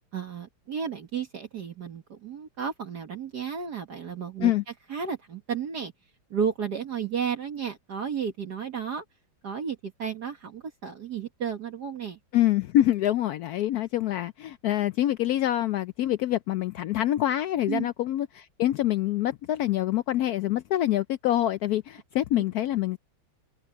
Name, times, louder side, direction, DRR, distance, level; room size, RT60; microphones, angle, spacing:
voice 1, 0.1-4.5 4.9-5.9 6.3-9.0 9.4-12.2 17.7-17.9 22.4-22.5, right 7 dB, 55° right, 2.1 m, -33 dB
voice 2, 12.3-23.0, left 13 dB, 85° left, 0.8 m, -26 dB
omnidirectional pair, 2.2 m